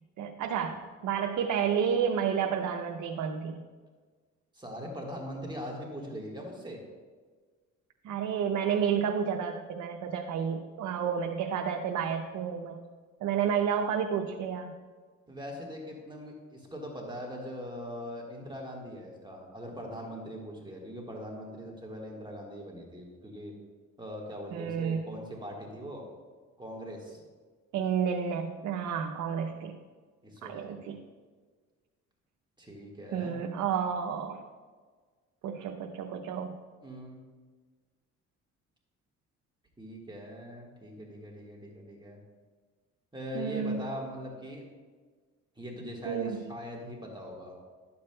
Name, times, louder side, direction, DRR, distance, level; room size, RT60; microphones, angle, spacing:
voice 1, 0.2-3.6 8.0-12.8 13.2-14.7 24.5-25.0 27.7-29.8 30.4-31.0 33.1-34.4 35.4-36.6 43.3-43.8 46.0-46.4, right 7 dB, 75° right, 3 dB, 0.6 m, -31 dB
voice 2, 4.5-6.8 15.3-23.5 24.0-26.0 26.6-27.2 30.2-30.9 32.6-33.4 36.8-37.3 39.8-42.2 43.1-44.6 45.6-47.6, equal, 15° right, -2 dB, 1.5 m, -41 dB
12.0 x 7.0 x 2.2 m, 1.5 s
cardioid pair, 90°, 30 cm